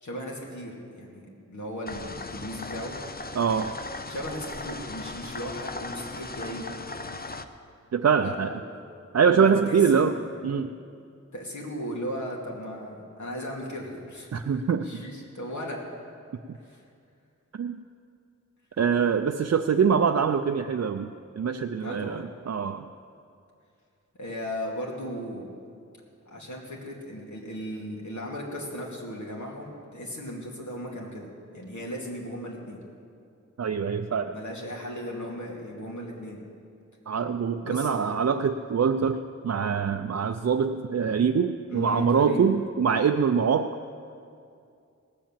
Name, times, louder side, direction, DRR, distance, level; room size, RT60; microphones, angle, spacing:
voice 1, 0.0-2.9 4.1-6.7 8.2-8.6 9.3-10.3 11.3-14.5 14.8-15.8 16.6-16.8 21.8-22.3 24.2-25.5 26.3-31.3 31.5-32.8 34.3-36.4 37.6-37.9 41.7-42.6, equal, 75° left, -2 dB, 2.5 m, -36 dB
sound 1, 1.9-7.4, left 3 dB, 30° left, 0.7 m, -38 dB
voice 2, 3.4-3.7 7.9-8.5 9.1-10.2 10.4-10.7 14.3-15.0 17.6-17.8 18.8-21.1 21.4-22.9 33.6-34.3 37.1-43.8, right 6 dB, 60° right, 6 dB, 0.5 m, -24 dB
18.0 x 7.5 x 7.4 m, 2.4 s
wide cardioid pair, 70°, 30 cm